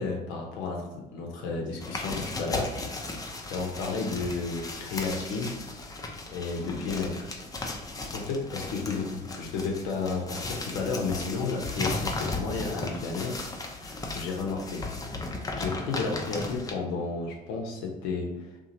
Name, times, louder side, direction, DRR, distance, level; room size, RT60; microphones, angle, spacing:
voice 1, 0.0-2.8 3.5-5.6 6.3-7.3 8.0-14.9 15.6-18.5, left 4 dB, 65° left, 0 dB, 0.6 m, -32 dB
sound 1, 1.8-16.7, left 2 dB, 15° left, 0.5 m, -36 dB
2.8 x 2.4 x 2.7 m, 1.0 s
hypercardioid pair, 55°, 21 cm